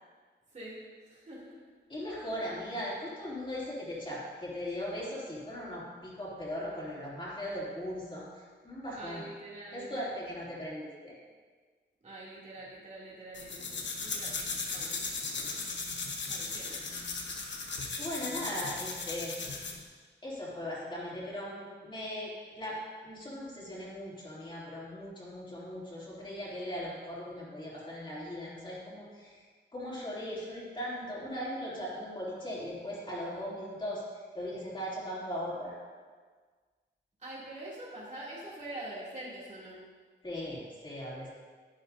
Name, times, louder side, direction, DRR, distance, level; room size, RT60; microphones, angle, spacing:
voice 1, 0.5-1.6 2.2-2.5 8.9-10.0 12.0-14.4 14.7-14.9 16.3-16.9 37.2-39.8, right 1 dB, 40° right, -7 dB, 2.8 m, -45 dB
voice 2, 1.9-9.2 9.7-11.1 18.0-19.4 20.2-22.8 23.0-35.8 40.2-41.3, equal, 25° left, -7 dB, 3.1 m, -39 dB
sound 1, 13.3-19.8, left 4 dB, 70° left, 1.2 m, -37 dB
11.0 x 10.5 x 2.7 m, 1.5 s
wide cardioid pair, 150°, 19 cm